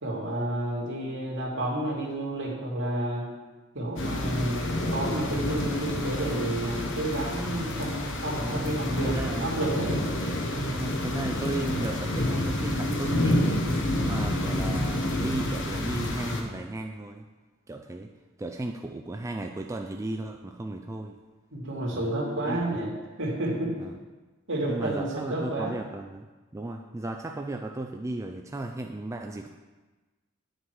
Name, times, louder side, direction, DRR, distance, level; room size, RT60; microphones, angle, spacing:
voice 1, 0.0-3.3 3.7-10.1 21.5-22.9 23.2-23.7 24.5-25.7, right 1 dB, 60° right, -4 dB, 2.5 m, -30 dB
sound 1, 4.0-16.4, left 1 dB, 60° left, 1.1 m, -29 dB
voice 2, 9.0-9.5 10.7-13.6 13.9-17.3 17.7-18.1 18.4-21.2 21.9-22.2 22.5-23.0 23.8-24.0 24.7-26.3 26.5-29.5, right 2 dB, 15° right, 3 dB, 0.3 m, -35 dB
9.4 x 6.4 x 4.6 m, 1.2 s
head